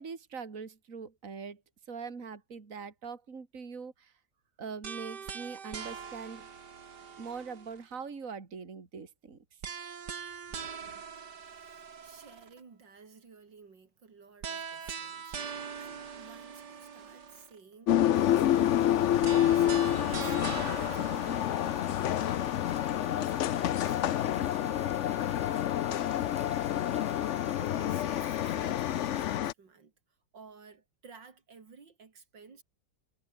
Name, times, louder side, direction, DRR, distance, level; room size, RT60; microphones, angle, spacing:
voice 1, 0.0-1.6 1.9-4.1 4.6-6.5 7.2-9.4 10.6-11.1, right 5 dB, 45° right, 2.8 m, -42 dB
sound 1, 4.8-8.0 9.6-12.6 14.4-17.6 19.2-22.7, right 6 dB, 70° right, 2.5 m, -42 dB
voice 2, 11.2-22.3 22.8-27.1 27.6-29.9 30.3-32.6, right 5 dB, 85° right, 3.5 m, -54 dB
sound 2, 17.9-29.5, left 11 dB, 65° left, 0.7 m, -28 dB
sound 3, 18.1-29.4, equal, 5° right, 3.2 m, -51 dB
omnidirectional pair, 1.9 m